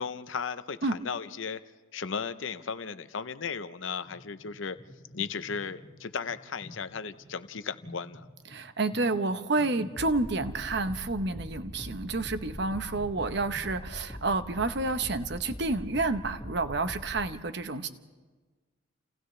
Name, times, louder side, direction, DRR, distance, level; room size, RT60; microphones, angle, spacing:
voice 1, 0.0-1.6 1.9-4.8 5.1-8.3, left 6 dB, 75° left, 12 dB, 0.7 m, -35 dB
sound 1, 4.0-14.2, equal, 35° left, 1.6 m, -51 dB
voice 2, 8.5-17.9, right 3 dB, 60° right, 9 dB, 0.9 m, -29 dB
sound 2, 9.9-17.3, equal, 10° left, 2.1 m, -42 dB
29.0 x 28.5 x 3.3 m, 1.3 s
head